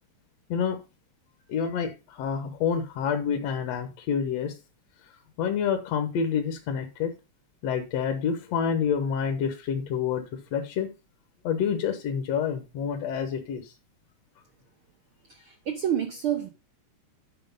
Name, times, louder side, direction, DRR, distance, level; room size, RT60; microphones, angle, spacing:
voice 1, 1.5-4.6 5.0-7.1 7.6-10.2 10.5-10.9 11.4-13.7, left 7 dB, 65° left, 6 dB, 1.9 m, -28 dB
voice 2, 15.4-16.5, right 9 dB, 80° right, 7 dB, 1.1 m, -28 dB
9.2 x 5.0 x 5.2 m, 0.30 s
omnidirectional pair, 3.5 m